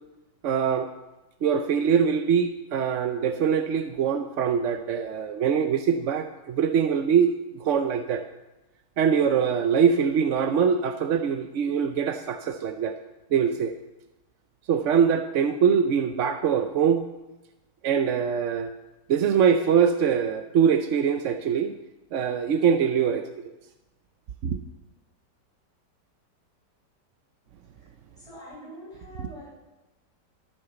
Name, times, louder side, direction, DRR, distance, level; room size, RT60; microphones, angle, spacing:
voice 1, 0.4-0.9 1.4-8.2 9.0-13.0 13.3-13.7 14.7-17.0 17.8-18.7 19.1-21.7 22.1-23.2 24.4-24.6 29.2-29.3, right 7 dB, 65° right, 8 dB, 0.8 m, -23 dB
voice 2, 28.2-29.5, equal, 15° right, -8 dB, 6.3 m, -44 dB
13.0 x 8.9 x 6.8 m, 1.0 s
omnidirectional pair, 1.9 m